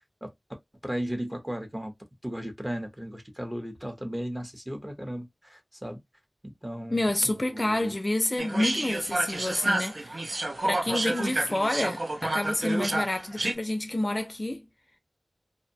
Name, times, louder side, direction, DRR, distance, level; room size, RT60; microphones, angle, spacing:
voice 1, 0.8-1.9 2.2-6.0 6.4-8.0, equal, 15° right, 0.8 m, -35 dB
voice 2, 6.9-10.2 10.6-14.6, left 1 dB, 35° left, 0.5 m, -28 dB
sound 1, 8.4-13.5, right 2 dB, 60° right, 0.4 m, -30 dB
2.6 x 2.1 x 2.6 m
wide cardioid pair, 60°, 0 cm